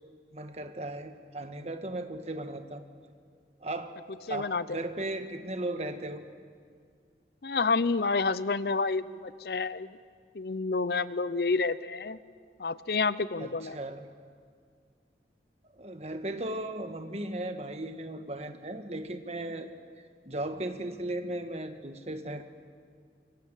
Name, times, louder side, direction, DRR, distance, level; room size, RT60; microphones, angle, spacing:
voice 1, 0.3-2.8 3.6-4.0 4.3-6.3 13.4-14.1 15.7-19.7 20.2-22.5, right 1 dB, 35° right, 7 dB, 1.5 m, -36 dB
voice 2, 4.3-4.8 7.4-10.0 10.3-12.2 12.6-13.8, left 4 dB, 60° left, 16 dB, 0.6 m, -29 dB
25.5 x 24.0 x 7.4 m, 2.1 s
head